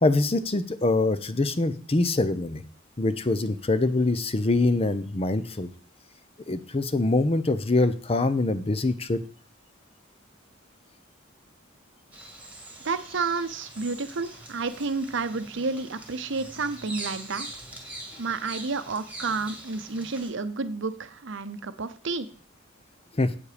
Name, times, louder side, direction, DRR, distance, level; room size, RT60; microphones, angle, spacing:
voice 1, 0.0-2.6 3.0-5.7 6.5-9.2 23.2-23.3, left 2 dB, 30° left, 12 dB, 0.7 m, -24 dB
Bird vocalization bird call bird song, 12.1-20.3, right 2 dB, 10° right, 1.9 m, -43 dB
voice 2, 12.8-17.5 18.2-22.3, right 4 dB, 65° right, 12 dB, 0.8 m, -30 dB
8.2 x 7.5 x 5.0 m, 0.40 s
head